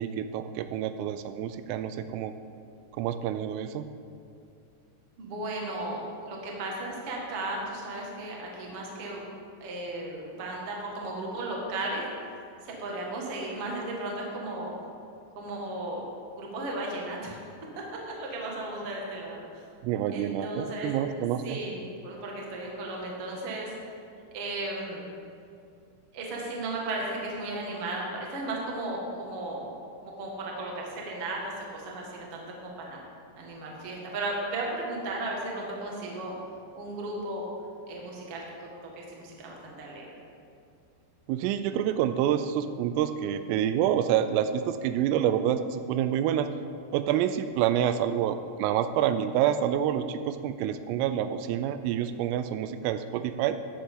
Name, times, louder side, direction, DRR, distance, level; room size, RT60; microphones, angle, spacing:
voice 1, 0.0-2.3 3.0-3.8 19.8-21.6 41.3-46.5 46.9-53.6, right 10 dB, 85° right, 11 dB, 3.1 m, -27 dB
voice 2, 5.2-9.3 9.6-12.0 12.6-14.7 15.3-16.1 16.3-17.4 17.7-17.8 18.2-19.6 20.1-20.9 21.2-23.7 24.3-25.1 26.1-29.7 30.0-33.0 33.4-36.3 36.7-37.5 37.9-38.7 38.9-40.0, right 2 dB, 70° right, -2 dB, 1.4 m, -35 dB
15.0 x 10.5 x 3.8 m, 2.4 s
omnidirectional pair, 5.9 m